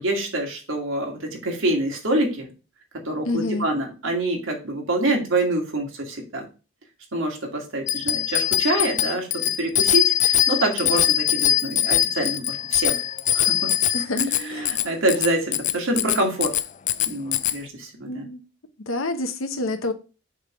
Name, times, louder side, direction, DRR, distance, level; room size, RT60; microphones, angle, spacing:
voice 1, 0.0-2.5 3.0-6.5 7.1-9.3 9.6-13.0 13.3-13.7 14.2-16.5 17.1-18.2, right 1 dB, 80° right, 2.3 m, -26 dB
voice 2, 3.2-3.7 13.9-14.2 14.5-14.8 17.4-17.5 18.0-18.4 18.9-19.9, left 2 dB, 90° left, 1.0 m, -28 dB
Bicycle bell, 7.9-17.6, left 12 dB, 35° left, 0.3 m, -22 dB
6.4 x 3.5 x 5.8 m
head